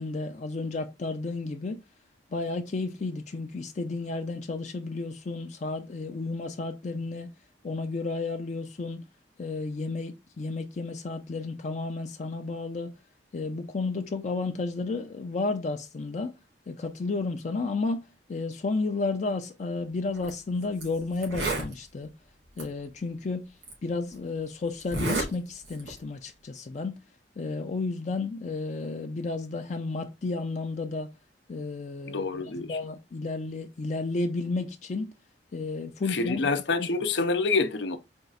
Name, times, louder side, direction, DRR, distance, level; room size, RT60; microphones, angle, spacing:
voice 1, 0.0-1.8 2.3-7.3 7.6-9.0 9.4-12.9 13.3-16.3 16.7-18.0 18.3-22.1 22.6-23.4 23.8-26.9 27.4-31.1 31.5-35.1 35.5-36.4 36.8-36.9, left 3 dB, 45° left, 0.4 m, -32 dB
Zipper (clothing), 20.1-20.3 20.8-20.9 21.2-21.7 22.6-22.7 23.6-23.7 24.8-25.3 25.6-26.0, right 2 dB, 90° right, 2.3 m, -30 dB
voice 2, 32.1-32.8 36.1-38.0, left 3 dB, 80° left, 0.6 m, -27 dB
4.4 x 2.4 x 3.9 m
head